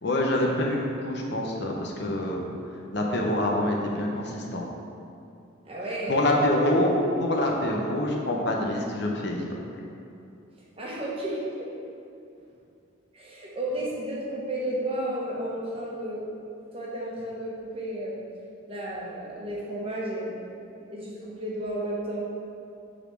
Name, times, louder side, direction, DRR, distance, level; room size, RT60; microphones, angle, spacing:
voice 1, 0.0-2.5 2.9-4.7 6.1-9.6, left 1 dB, 55° left, -1 dB, 0.8 m, -26 dB
voice 2, 5.6-6.2 10.8-11.7 13.1-16.3 16.7-18.2 18.7-20.4 20.9-22.3, right 1 dB, 25° right, -5 dB, 1.3 m, -32 dB
6.2 x 4.2 x 6.2 m, 2.6 s
head